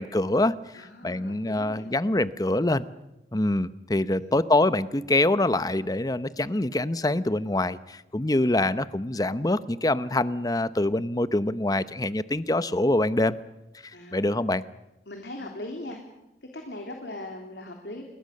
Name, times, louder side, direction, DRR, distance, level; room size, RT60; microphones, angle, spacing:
voice 1, 0.0-2.8 3.3-13.4 13.8-14.6, left 2 dB, 20° left, 14 dB, 0.8 m, -25 dB
voice 2, 0.7-1.9 4.1-4.5 13.9-14.4 15.1-16.0 16.4-18.0, left 1 dB, 75° left, 2 dB, 3.4 m, -40 dB
28.5 x 21.5 x 6.6 m, 0.95 s
head